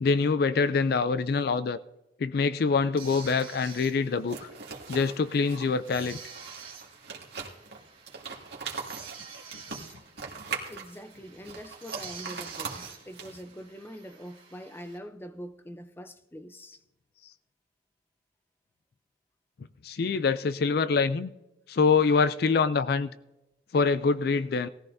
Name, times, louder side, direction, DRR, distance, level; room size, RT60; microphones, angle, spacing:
voice 1, 0.0-1.8 2.2-4.5 4.9-6.2 19.8-21.3 21.7-23.1 23.7-24.7, left 4 dB, 55° left, 0.4 m, -25 dB
sound 1, 2.9-15.0, right 6 dB, 30° right, 3.2 m, -49 dB
sound 2, 3.1-13.6, right 5 dB, 65° right, 2.1 m, -41 dB
voice 2, 10.7-16.8, equal, 10° left, 0.6 m, -44 dB
19.0 x 14.0 x 2.7 m
head